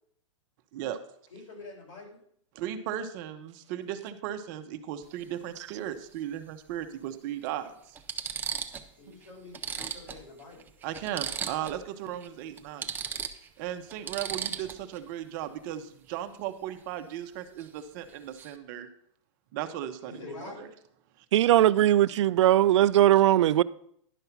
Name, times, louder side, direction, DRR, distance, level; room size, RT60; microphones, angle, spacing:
voice 1, 1.3-2.2 8.9-10.7 20.0-20.7, left 3 dB, 80° left, 4.5 m, -46 dB
voice 2, 2.5-8.0 10.8-12.9 13.6-18.9 19.5-20.7 21.2-21.3, right 11 dB, 40° right, 0.9 m, -36 dB
sound 1, 5.0-5.2 6.7-6.8 7.5-7.6 8.0-8.9 9.2-9.3 9.5-11.8 12.1-12.3 12.6-15.0 17.6-17.8 18.1-18.6, right 7 dB, 10° right, 0.5 m, -36 dB
voice 3, 21.3-23.6, right 13 dB, 65° right, 0.4 m, -20 dB
11.0 x 5.5 x 5.9 m
hypercardioid pair, 155°, 16 cm